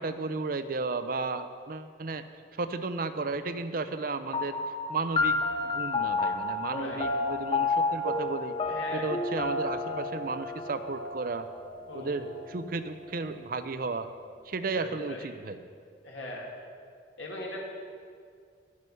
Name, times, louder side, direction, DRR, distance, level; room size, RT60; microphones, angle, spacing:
voice 1, 0.0-8.6 8.9-11.5 11.9-14.1 14.4-15.6, right 3 dB, 50° right, 10 dB, 0.6 m, -34 dB
sound 1, 4.3-13.1, left 3 dB, 25° left, 0.7 m, -31 dB
voice 2, 6.7-7.0 8.7-9.1 11.9-12.3 14.7-15.3 16.0-16.5 17.2-17.6, left 1 dB, 85° left, -2 dB, 2.4 m, -39 dB
11.5 x 9.6 x 5.6 m, 2.2 s
head